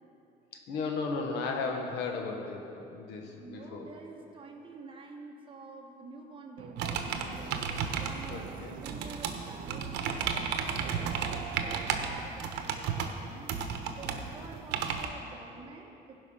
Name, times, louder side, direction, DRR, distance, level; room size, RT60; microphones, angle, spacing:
voice 1, 0.7-3.9 8.3-8.8, left 4 dB, 90° left, 2 dB, 1.4 m, -35 dB
voice 2, 3.2-13.6 13.9-16.1, right 3 dB, 30° right, 1 dB, 1.4 m, -48 dB
sound 1, 6.6-12.2, right 11 dB, 55° right, 0.4 m, -46 dB
sound 2, 6.8-15.1, right 6 dB, 85° right, 0.9 m, -34 dB
16.0 x 5.4 x 5.6 m, 2.8 s
cardioid pair, 110°, 17 cm